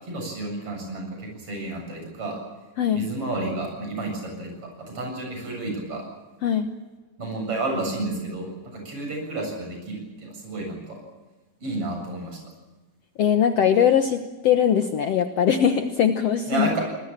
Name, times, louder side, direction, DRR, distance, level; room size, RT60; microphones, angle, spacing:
voice 1, 0.0-2.4 2.9-4.6 4.9-6.0 7.2-11.0 11.6-12.4 16.5-16.8, right 2 dB, 45° right, 2 dB, 8.7 m, -31 dB
voice 2, 13.2-16.7, left 8 dB, 60° left, 7 dB, 2.0 m, -21 dB
26.0 x 21.0 x 7.4 m, 1.2 s
omnidirectional pair, 3.6 m